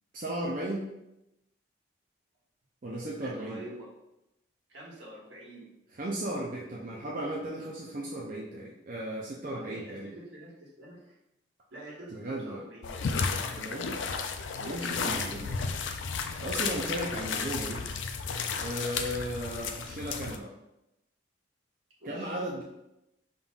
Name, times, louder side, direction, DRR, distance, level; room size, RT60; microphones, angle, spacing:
voice 1, 0.1-0.9 2.8-3.6 5.9-10.1 12.1-12.6 13.6-13.9 14.6-15.6 16.4-17.9 18.6-20.5 22.0-22.6, right 1 dB, 45° right, -3 dB, 0.5 m, -35 dB
voice 2, 3.2-3.9 4.7-5.7 9.4-11.2 11.7-13.3 14.9-15.2 22.0-22.4, right 1 dB, 80° right, -5 dB, 1.5 m, -46 dB
sound 1, 12.8-20.4, left 5 dB, 75° left, 0.4 m, -33 dB
5.5 x 3.7 x 2.4 m, 0.89 s
head